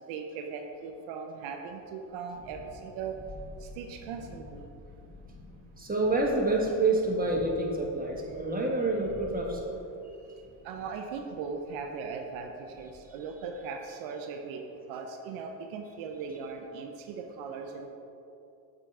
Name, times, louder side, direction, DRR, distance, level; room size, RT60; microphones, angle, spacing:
voice 1, 0.1-3.2 3.8-4.7 10.6-14.6 14.9-17.9, right 5 dB, 80° right, 4 dB, 0.6 m, -39 dB
Thunderstorm, 2.1-13.7, left 2 dB, 35° left, 0.9 m, -50 dB
voice 2, 5.8-9.8 10.0-10.4, right 2 dB, 20° right, -1 dB, 1.4 m, -28 dB
7.0 x 3.9 x 4.5 m, 2.6 s
supercardioid pair, 60°, 47 cm